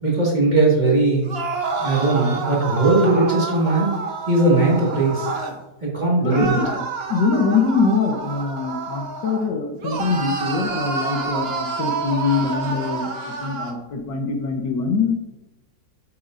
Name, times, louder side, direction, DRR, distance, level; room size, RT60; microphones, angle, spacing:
voice 1, 0.0-1.3 1.8-3.9 4.3-5.3 5.8-6.6, right 2 dB, 25° right, -4 dB, 1.9 m, -19 dB
sound 1, 1.2-5.6 6.3-9.5 9.8-13.8, right 4 dB, 45° right, 0.9 m, -28 dB
voice 2, 6.2-6.7 7.1-15.1, left 4 dB, 75° left, 4 dB, 1.6 m, -23 dB
8.3 x 7.2 x 2.6 m, 0.93 s
omnidirectional pair, 2.0 m